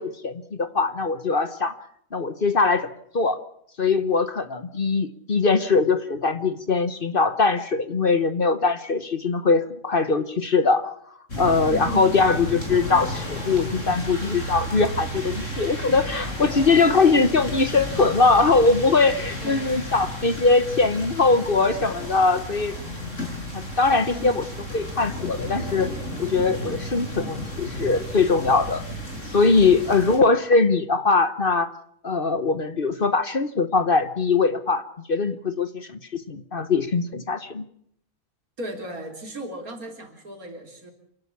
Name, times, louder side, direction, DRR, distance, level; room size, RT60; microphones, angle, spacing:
voice 1, 0.0-1.7 2.1-2.9 3.1-3.4 3.8-10.9 11.4-22.7 23.5-24.5 24.7-25.9 26.2-28.8 29.3-31.7 32.0-34.8 35.1-37.6, left 4 dB, 40° left, 12 dB, 1.2 m, -21 dB
sound 1, 11.3-30.2, equal, 60° left, 6.0 m, -33 dB
voice 2, 11.7-12.2 19.4-19.8 22.9-23.1 24.1-24.4 29.6-30.0 38.6-40.9, right 1 dB, 80° right, 4 dB, 4.1 m, -37 dB
28.0 x 12.0 x 8.6 m, 0.69 s
omnidirectional pair, 1.5 m